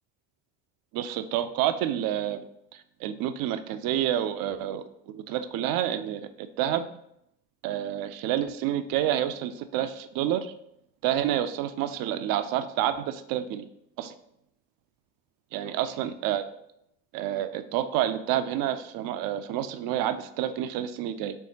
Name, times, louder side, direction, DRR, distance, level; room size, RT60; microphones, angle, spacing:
voice 1, 0.9-2.4 2.7-4.8 5.1-6.8 7.6-10.5 11.0-13.7 14.0-14.1 15.5-16.4 17.1-21.4, right 11 dB, 60° right, 11 dB, 0.5 m, -29 dB
4.5 x 2.9 x 2.8 m, 0.76 s
supercardioid pair, 75°, 39 cm